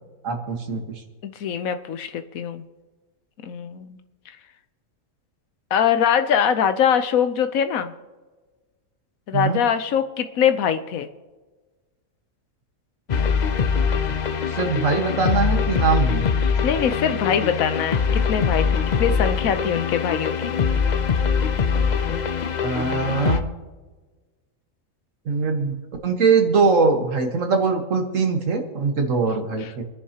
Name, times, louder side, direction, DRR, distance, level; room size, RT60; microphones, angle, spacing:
voice 1, 0.2-0.8 9.3-9.6 14.5-16.3 22.6-23.5 25.3-29.8, right 4 dB, 65° right, 4 dB, 1.8 m, -22 dB
voice 2, 1.2-2.6 3.4-4.0 5.7-7.9 9.3-11.1 16.6-20.6 29.6-29.7, left 8 dB, 75° left, 9 dB, 1.2 m, -23 dB
sound 1, 13.1-23.4, left 6 dB, 45° left, 0.5 m, -23 dB
28.0 x 10.5 x 2.9 m, 1.3 s
omnidirectional pair, 1.5 m